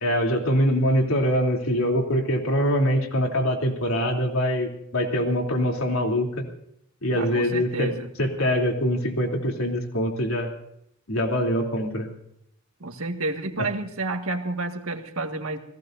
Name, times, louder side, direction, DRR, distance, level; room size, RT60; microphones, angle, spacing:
voice 1, 0.0-6.3 7.0-7.9 8.2-10.5 11.1-12.1 13.6-13.7, equal, 85° left, 2 dB, 3.3 m, -23 dB
voice 2, 7.1-8.1 12.8-15.6, right 2 dB, 90° right, 5 dB, 1.9 m, -30 dB
30.0 x 18.0 x 2.7 m, 0.76 s
head